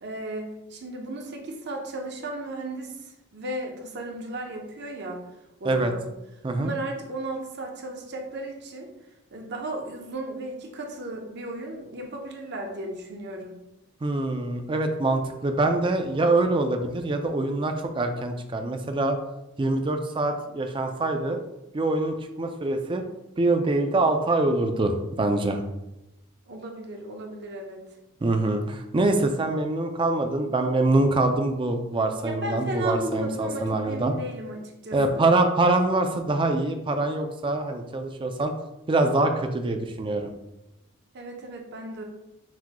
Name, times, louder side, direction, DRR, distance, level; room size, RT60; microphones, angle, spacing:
voice 1, 0.0-5.2 5.6-6.0 6.6-8.9 9.3-13.5 26.5-27.8 32.2-35.2 41.1-42.0, right 2 dB, 55° right, 1 dB, 0.7 m, -35 dB
voice 2, 14.0-19.2 19.6-21.4 21.7-23.0 23.4-25.6 28.2-34.1 34.9-38.5 38.9-40.3, right 2 dB, 25° right, 5 dB, 0.4 m, -24 dB
5.9 x 3.0 x 2.2 m, 0.94 s
head